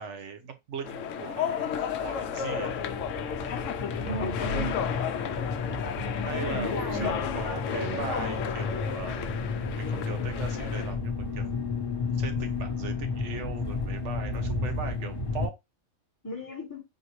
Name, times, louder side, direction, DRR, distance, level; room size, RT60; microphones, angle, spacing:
voice 1, 0.0-2.7 6.2-9.3 9.7-11.5 12.1-15.6, right 5 dB, 65° right, 1.1 m, -39 dB
sound 1, 0.8-11.0, left 8 dB, 75° left, 0.9 m, -33 dB
sound 2, 1.8-15.5, left 3 dB, 45° left, 1.5 m, -33 dB
voice 2, 4.0-4.8 6.5-8.0 16.2-16.8, equal, 15° left, 1.2 m, -36 dB
5.0 x 2.6 x 3.0 m
omnidirectional pair, 1.3 m